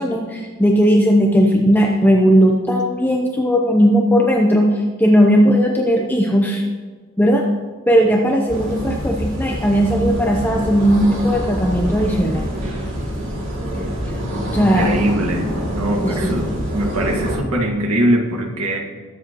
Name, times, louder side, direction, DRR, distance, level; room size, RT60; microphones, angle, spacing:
voice 1, 0.0-6.6 7.2-7.5 7.9-12.4 13.7-14.2 14.5-14.9 16.0-16.3, equal, 10° left, 0 dB, 0.7 m, -16 dB
sound 1, 8.5-17.4, equal, 60° right, 2.7 m, -25 dB
voice 2, 14.6-15.4 15.7-18.8, right 1 dB, 85° right, 1 dB, 1.9 m, -21 dB
21.0 x 7.6 x 3.0 m, 1.5 s
head